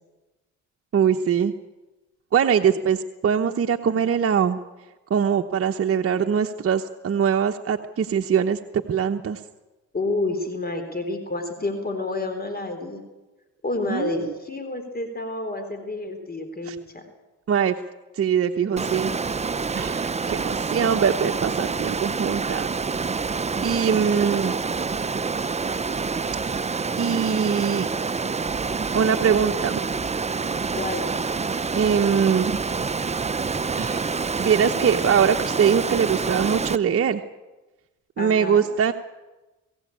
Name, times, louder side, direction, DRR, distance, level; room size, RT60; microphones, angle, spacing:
voice 1, 0.9-1.5 2.3-4.6 5.1-8.6 8.9-9.4 13.9-14.3 16.6-16.8 17.5-17.8 18.1-19.1 19.7-22.7 23.6-24.5 27.0-27.9 28.9-29.9 31.7-32.6 33.8-34.1 34.4-37.2 38.2-38.9, right 7 dB, 45° right, 4 dB, 1.0 m, -22 dB
voice 2, 9.9-13.0 13.6-17.0 30.7-31.1 38.2-38.7, left 2 dB, 30° left, 7 dB, 3.6 m, -29 dB
Water, 18.8-36.8, right 4 dB, 20° right, 0.7 m, -27 dB
21.5 x 15.5 x 8.4 m, 1.1 s
supercardioid pair, 65°, 32 cm